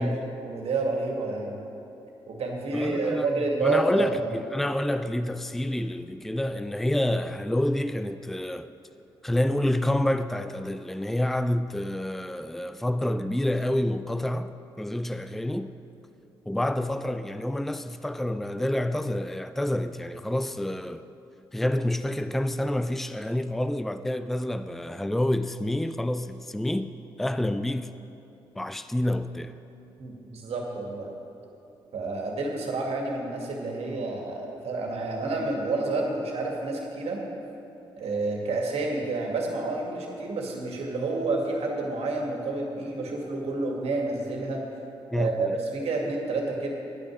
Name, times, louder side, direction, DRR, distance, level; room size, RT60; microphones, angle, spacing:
voice 1, 0.0-1.6 2.3-4.3 30.0-31.1 31.9-37.2 38.0-44.6 45.1-46.7, right 3 dB, 60° right, 2.2 m, -29 dB
voice 2, 2.7-3.3 3.6-8.7 9.2-15.7 16.5-21.1 21.5-26.9 27.2-28.0 28.6-29.6 45.1-45.5, left 1 dB, ahead, 0.5 m, -28 dB
10.5 x 9.8 x 6.3 m
hypercardioid pair, 40°, 12 cm